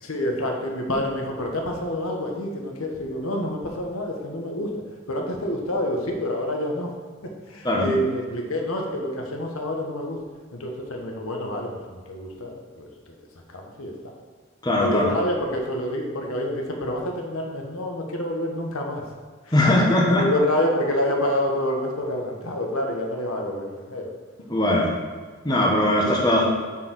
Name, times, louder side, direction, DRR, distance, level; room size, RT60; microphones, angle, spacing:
voice 1, 0.0-4.7 5.1-6.9 7.5-10.2 10.5-13.1 13.5-13.9 14.8-19.0 19.5-19.6 20.1-24.1 24.4-24.5 26.0-26.1, left 1 dB, 85° left, 1 dB, 1.3 m, -27 dB
voice 2, 14.6-15.1 19.5-20.2 24.5-24.9 25.4-26.5, left 1 dB, 20° left, -3 dB, 1.2 m, -20 dB
7.2 x 4.7 x 6.3 m, 1.5 s
head